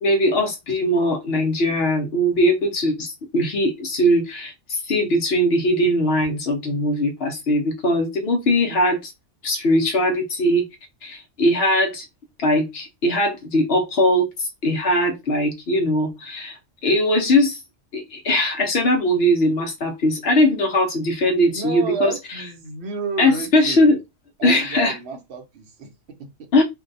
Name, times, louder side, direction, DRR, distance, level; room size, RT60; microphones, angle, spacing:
voice 1, 0.0-9.1 9.4-10.6 11.0-12.1 12.4-17.6 17.9-22.4 23.2-24.0 24.4-25.0 26.5-26.6, left 1 dB, 60° left, 0.9 m, -20 dB
voice 2, 21.5-24.0 24.4-26.5, right 5 dB, 65° right, 0.9 m, -31 dB
2.7 x 2.2 x 3.8 m
omnidirectional pair, 1.3 m